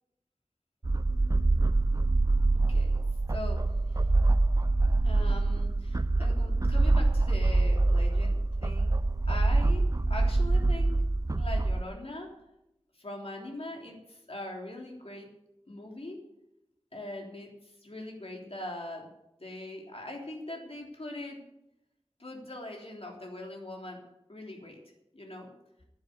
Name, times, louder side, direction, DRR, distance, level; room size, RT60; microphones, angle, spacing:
sound 1, 0.8-11.8, right 2 dB, 35° right, 0.5 m, -25 dB
voice 1, 2.7-3.0 3.3-3.8 5.0-8.9 9.3-11.0 11.4-12.3 13.0-15.3 15.7-16.2 16.9-19.1 19.4-21.4 22.2-24.0 24.3-24.8 25.1-25.5, left 1 dB, 70° left, 0 dB, 3.4 m, -41 dB
11.0 x 10.5 x 8.3 m, 0.87 s
wide cardioid pair, 40°, 10 cm